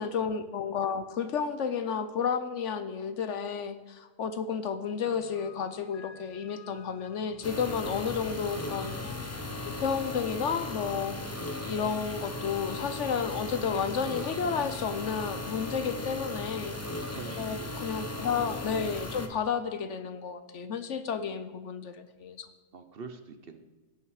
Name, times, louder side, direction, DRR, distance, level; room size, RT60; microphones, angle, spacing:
voice 1, 0.0-8.9 9.6-11.2 11.6-16.7 17.4-22.5, left 6 dB, 60° left, 10 dB, 0.8 m, -32 dB
sound 1, 5.0-12.3, left 8 dB, 80° left, 1.3 m, -50 dB
sound 2, 7.4-19.3, left 2 dB, 20° left, 0.4 m, -37 dB
voice 2, 16.0-16.3 17.1-18.4 22.7-23.6, right 5 dB, 50° right, 8 dB, 0.7 m, -46 dB
16.5 x 5.7 x 4.8 m, 1.3 s
omnidirectional pair, 1.7 m